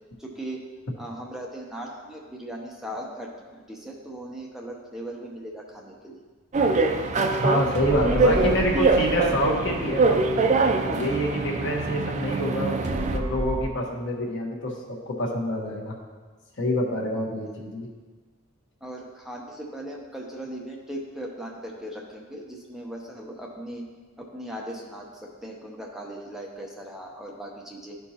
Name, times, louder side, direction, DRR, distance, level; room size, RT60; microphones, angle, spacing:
voice 1, 0.2-0.6 1.0-6.2 8.3-8.4 17.4-17.5 18.8-23.9 24.2-28.0, right 1 dB, ahead, -2 dB, 0.7 m, -38 dB
sound 1, 6.5-13.2, right 3 dB, 35° right, 0.4 m, -24 dB
voice 2, 7.4-10.3 10.9-12.8 13.1-15.9 16.6-17.9, equal, 60° left, -1 dB, 1.2 m, -26 dB
sound 2, 7.7-13.7, equal, 60° right, 1.0 m, -33 dB
12.5 x 4.6 x 2.8 m, 1.4 s
head